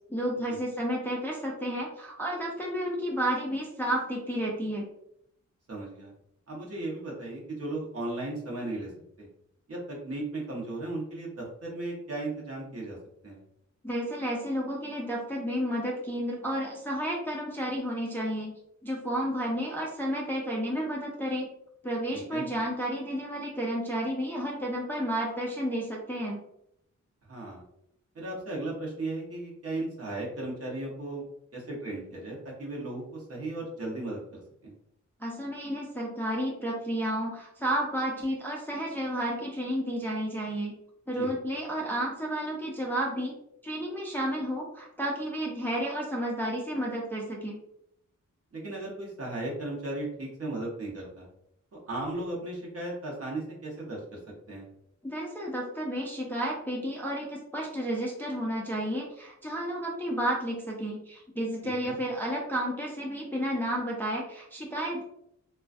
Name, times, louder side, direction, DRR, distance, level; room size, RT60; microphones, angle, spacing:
voice 1, 0.1-4.9 13.8-18.5 18.8-21.5 21.8-26.4 35.2-40.7 41.1-43.3 43.6-47.6 55.0-65.0, equal, 5° left, -3 dB, 0.3 m, -31 dB
voice 2, 5.7-6.1 6.5-8.9 9.2-9.3 9.7-13.0 13.2-13.4 22.1-22.4 27.3-27.6 28.1-31.2 31.5-34.7 41.2-41.3 48.5-51.3 51.7-54.2 54.5-54.7 61.6-62.0, right 2 dB, 50° right, -3 dB, 0.8 m, -36 dB
2.3 x 2.3 x 2.4 m, 0.76 s
wide cardioid pair, 160°, 30 cm